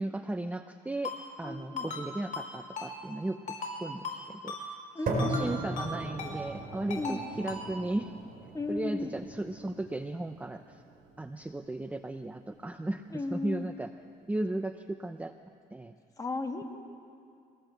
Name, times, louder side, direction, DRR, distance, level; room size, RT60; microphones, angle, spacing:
voice 1, 0.0-4.7 5.1-8.1 8.7-10.8 11.2-13.9 14.3-15.4 15.7-15.9, right 2 dB, 10° right, 9 dB, 0.6 m, -36 dB
Ringtone, 1.0-1.2 1.8-2.0 2.3-2.5 2.8-2.9 3.5-3.7 4.0-4.2 4.5-4.6 5.2-5.5 5.8-5.9 6.2-6.3 6.9-7.2 7.5-7.6, left 4 dB, 45° left, 5.0 m, -37 dB
voice 2, 1.4-1.9 4.9-5.6 6.9-7.2 8.5-9.1 13.1-13.7 16.2-16.6, left 3 dB, 20° left, 3 dB, 2.2 m, -35 dB
sound 1, 5.1-13.1, right 1 dB, 60° right, 4.5 m, -39 dB
23.5 x 18.0 x 7.9 m, 2.4 s
cardioid pair, 110°, 17 cm